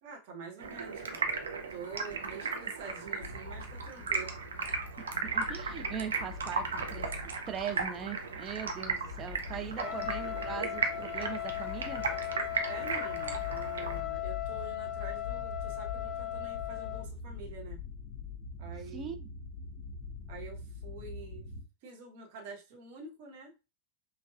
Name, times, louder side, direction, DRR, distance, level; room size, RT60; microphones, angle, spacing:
voice 1, 0.0-4.4 9.8-10.0 12.6-17.8 18.6-19.2 20.3-21.5 21.8-23.5, right 4 dB, 50° right, 1.2 m, -46 dB
Stream, 0.6-14.0, right 4 dB, 70° right, 0.6 m, -36 dB
sound 1, 3.2-21.6, left 4 dB, 45° left, 0.9 m, -44 dB
voice 2, 5.0-12.1 18.9-19.3, right 7 dB, 25° right, 0.6 m, -41 dB
Trumpet, 9.7-17.1, left 13 dB, 25° left, 0.4 m, -37 dB
5.3 x 2.3 x 2.4 m
figure-of-eight pair, 90°, 0 cm